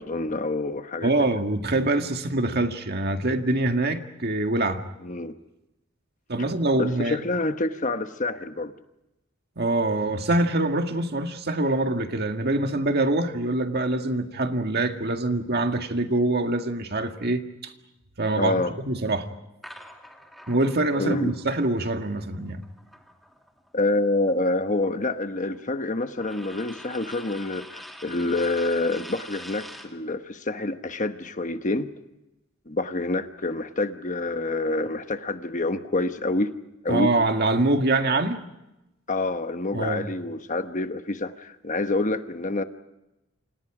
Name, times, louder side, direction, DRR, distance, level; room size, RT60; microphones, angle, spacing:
voice 1, 0.0-1.3 5.0-5.3 6.7-8.7 18.3-18.7 20.9-21.3 23.7-31.9 32.7-36.5 36.8-37.1 39.1-42.6, left 2 dB, 35° left, 9 dB, 1.2 m, -27 dB
voice 2, 1.0-4.8 6.3-7.2 9.6-17.7 18.2-19.3 20.5-22.6 36.9-38.4 39.7-40.1, right 2 dB, 50° right, 6 dB, 1.9 m, -24 dB
sound 1, 19.6-23.7 24.0-30.0, equal, ahead, 2.3 m, -45 dB
29.5 x 26.5 x 5.0 m, 0.94 s
head